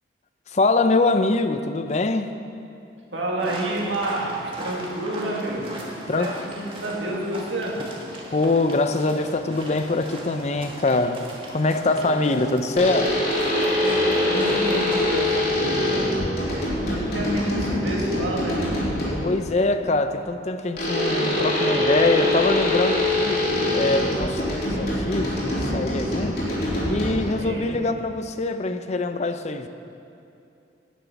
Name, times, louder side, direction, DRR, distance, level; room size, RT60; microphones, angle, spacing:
voice 1, 0.5-2.3 6.1-6.4 8.3-13.2 19.2-23.4 23.7-26.4 26.9-29.7, left 2 dB, 35° left, 0.5 m, -23 dB
voice 2, 3.1-7.9 11.8-12.7 13.8-18.7 27.3-27.8, right 1 dB, 80° right, 2.2 m, -30 dB
sound 1, 3.4-15.4, right 1 dB, 30° right, 1.7 m, -38 dB
sound 2, 12.8-19.4 20.8-27.4, left 1 dB, 55° left, 3.3 m, -24 dB
10.5 x 10.0 x 5.9 m
head